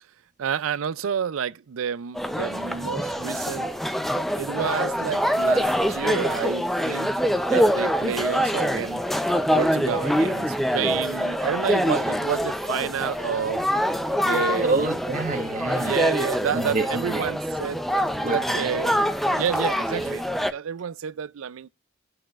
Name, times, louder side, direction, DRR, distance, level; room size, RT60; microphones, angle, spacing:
voice 1, 0.4-3.7 4.3-7.1 7.4-9.0 9.5-13.7 14.2-14.9 15.8-17.8 18.3-19.0 19.4-21.7, right 7 dB, 85° right, 0.4 m, -29 dB
sound 1, 2.1-20.5, equal, ahead, 0.5 m, -25 dB
voice 2, 14.6-16.0 16.5-17.3 17.9-19.0, right 3 dB, 40° right, 1.4 m, -28 dB
18.0 x 6.3 x 2.4 m
head